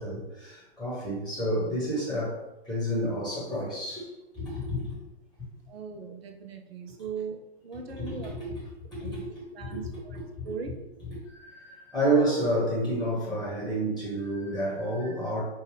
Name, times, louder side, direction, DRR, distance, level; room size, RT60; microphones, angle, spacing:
voice 1, 0.0-4.1 4.3-5.0 8.0-8.6 8.9-9.9 10.2-10.3 10.6-10.7 11.0-15.4, right 1 dB, ahead, -6 dB, 1.0 m, -30 dB
voice 2, 5.7-8.3 9.0-9.2 9.5-10.7, right 6 dB, 65° right, 4 dB, 0.7 m, -39 dB
5.2 x 2.3 x 3.4 m, 0.96 s
figure-of-eight pair, 110°, 32 cm